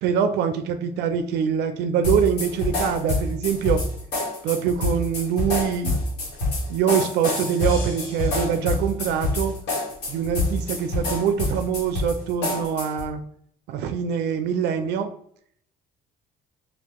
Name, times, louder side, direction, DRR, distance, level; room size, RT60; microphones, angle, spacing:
voice 1, 0.0-3.8 4.4-6.0 6.7-9.5 10.1-13.2 13.7-15.1, right 7 dB, 80° right, 8 dB, 0.4 m, -24 dB
sound 1, 2.0-13.1, left 2 dB, 85° left, 1.3 m, -26 dB
2.9 x 2.4 x 3.4 m, 0.65 s
cardioid pair, 110°, 17 cm